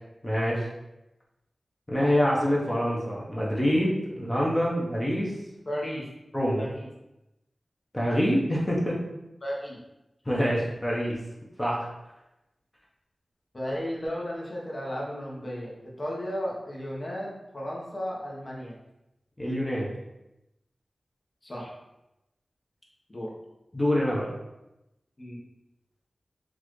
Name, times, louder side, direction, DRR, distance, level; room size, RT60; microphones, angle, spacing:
voice 1, 0.2-0.7 1.9-5.3 6.3-6.6 7.9-9.0 10.3-11.2 11.6-11.9 19.4-19.9 23.7-24.3, equal, 20° left, -5 dB, 0.8 m, -25 dB
voice 2, 5.7-6.1 6.6-6.9 9.4-9.8 13.5-18.7 21.4-21.7 23.1-23.3 25.2-25.4, equal, 40° left, -4 dB, 1.0 m, -34 dB
4.0 x 2.5 x 3.1 m, 0.93 s
wide cardioid pair, 60°, 0 cm